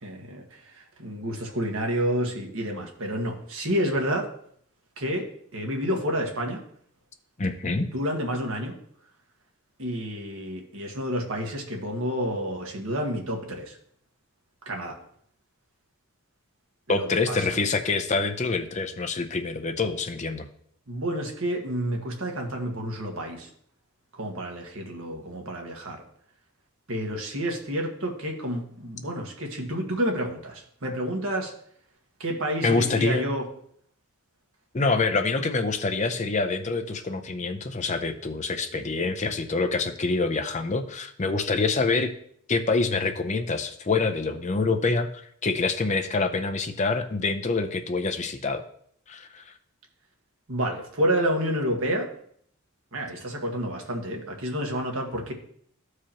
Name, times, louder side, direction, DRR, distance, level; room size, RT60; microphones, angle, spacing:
voice 1, 0.0-4.3 5.0-5.3 5.5-6.6 7.9-8.7 9.8-13.8 14.6-15.0 16.9-17.4 20.9-23.5 24.1-26.0 26.9-31.5 32.2-33.5 50.5-52.1 52.9-55.3, equal, 65° right, 2 dB, 1.5 m, -29 dB
voice 2, 7.4-7.9 16.9-20.5 32.6-33.3 34.7-42.1 42.5-48.6 49.1-49.5, left 3 dB, 30° left, 7 dB, 0.5 m, -26 dB
14.0 x 4.8 x 3.0 m, 0.65 s
head